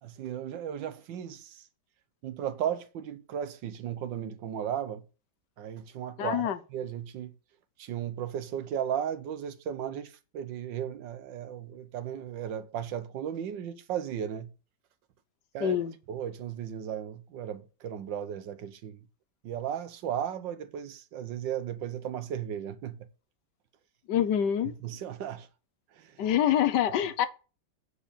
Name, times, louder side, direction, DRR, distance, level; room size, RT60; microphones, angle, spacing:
voice 1, 0.0-1.7 2.2-5.0 5.6-7.3 7.8-14.5 15.5-15.8 16.1-19.1 19.4-23.1 24.6-25.5 25.9-26.2, right 9 dB, 80° right, 1.5 m, -35 dB
voice 2, 6.2-6.6 15.6-15.9 24.1-24.7 26.2-27.3, left 10 dB, 70° left, 1.4 m, -26 dB
9.1 x 4.6 x 6.7 m
omnidirectional pair, 2.0 m